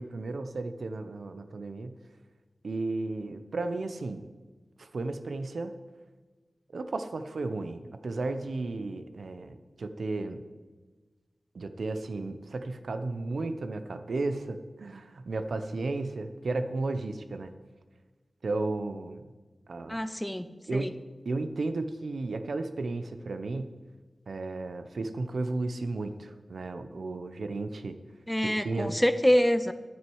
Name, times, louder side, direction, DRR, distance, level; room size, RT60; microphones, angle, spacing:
voice 1, 0.0-1.9 2.6-4.3 4.8-5.7 6.7-10.4 11.5-17.5 18.4-19.3 19.7-20.0 20.7-21.0 21.2-23.7 24.3-28.0 28.4-29.0, right 3 dB, 80° right, 9 dB, 0.8 m, -34 dB
voice 2, 19.9-20.9 28.3-29.7, equal, 5° left, 12 dB, 0.6 m, -26 dB
11.0 x 9.3 x 4.8 m, 1.3 s
wide cardioid pair, 65°, 0 cm